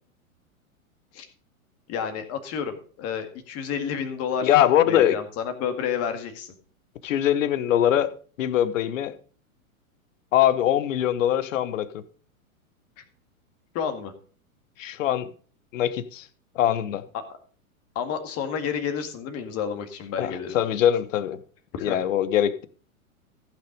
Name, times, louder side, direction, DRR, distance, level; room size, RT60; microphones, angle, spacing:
voice 1, 1.9-4.5 4.8-6.5 13.7-14.1 17.1-17.2 18.0-20.6 21.7-22.0, left 7 dB, 35° left, 1.9 m, -30 dB
voice 2, 4.4-5.2 7.0-8.1 8.4-9.1 10.3-12.0 14.8-15.3 15.7-16.3 16.5-17.0 20.2-21.4 21.8-22.7, left 11 dB, 60° left, 1.1 m, -22 dB
14.5 x 6.1 x 5.1 m
hypercardioid pair, 105°, 43 cm